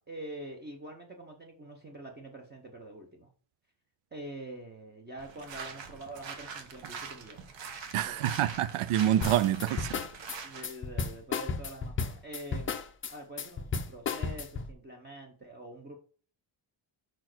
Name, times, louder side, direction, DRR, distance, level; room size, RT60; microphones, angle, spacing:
voice 1, 0.0-3.3 4.1-7.5 8.0-8.4 10.4-12.8 13.1-16.0, right 1 dB, 20° right, 0.8 m, -45 dB
sound 1, 5.2-10.7, right 5 dB, 60° right, 1.2 m, -43 dB
voice 2, 7.9-10.0, right 12 dB, 85° right, 0.6 m, -27 dB
sound 2, 9.2-14.7, left 5 dB, 25° left, 0.5 m, -34 dB
5.2 x 4.4 x 6.0 m
cardioid pair, 180°, 49 cm